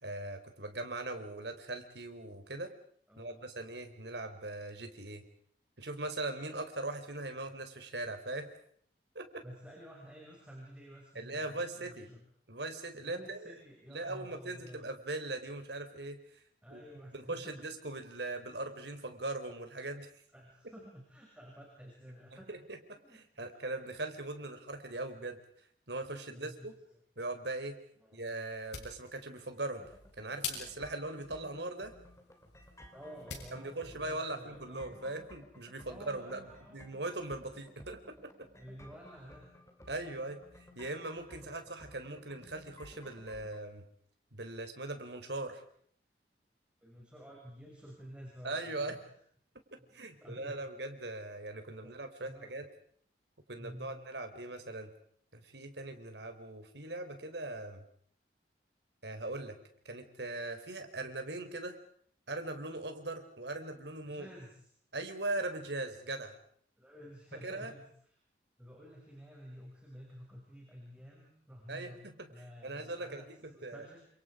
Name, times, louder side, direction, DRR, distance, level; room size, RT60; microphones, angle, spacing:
voice 1, 0.0-2.7 3.2-5.2 5.8-8.5 9.1-9.4 11.1-12.1 12.5-13.5 13.9-16.2 16.7-16.8 17.1-20.1 22.5-25.4 25.9-26.7 27.2-27.8 28.1-29.8 30.2-31.9 33.5-38.5 39.9-40.4 40.8-43.9 44.3-45.6 48.4-49.0 49.7-52.7 53.5-54.9 55.3-57.8 59.0-59.6 59.9-61.8 62.3-64.3 64.9-66.4 67.4-67.7 71.7-72.3 72.6-73.2 73.6-73.9, right 2 dB, 75° right, 7 dB, 4.0 m, -40 dB
voice 2, 3.1-3.4 9.4-12.2 13.0-14.9 16.6-17.6 20.3-22.5 22.9-23.5 26.3-26.7 28.0-28.2 32.9-35.1 35.9-36.8 38.6-39.5 41.4-41.5 46.8-49.0 49.7-50.6 51.8-51.9 52.2-52.6 53.6-54.0 64.1-64.7 66.8-68.1 68.6-72.0 72.3-74.0, equal, 5° right, -3 dB, 6.2 m, -51 dB
sound 1, 28.4-33.6, left 6 dB, 75° left, 7.6 m, -47 dB
sound 2, 29.8-43.6, left 1 dB, 15° left, 3.3 m, -56 dB
29.5 x 27.5 x 5.0 m, 0.62 s
head